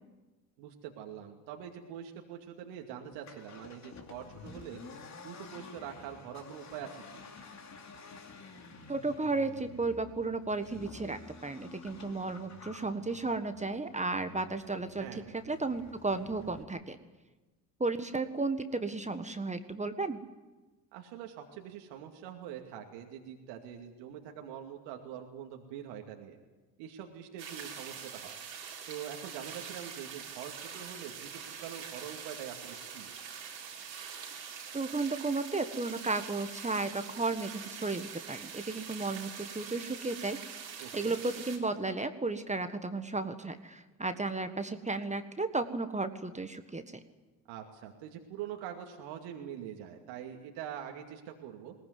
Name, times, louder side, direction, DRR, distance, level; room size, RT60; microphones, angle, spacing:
voice 1, 0.6-7.2 15.0-15.3 20.9-26.4 26.8-28.4 28.9-33.1 40.8-41.2 47.5-51.7, right 9 dB, 65° right, 2 dB, 2.5 m, -44 dB
Accelerating revving vroom, 3.1-16.6, left 4 dB, 35° left, 2.9 m, -51 dB
voice 2, 8.9-17.0 17.8-20.2 34.7-40.4 40.9-47.0, right 3 dB, 15° right, 9 dB, 1.6 m, -34 dB
sound 1, 27.4-41.6, right 7 dB, 90° right, 3.7 m, -44 dB
21.5 x 19.0 x 9.6 m, 1.2 s
hypercardioid pair, 65°, 50 cm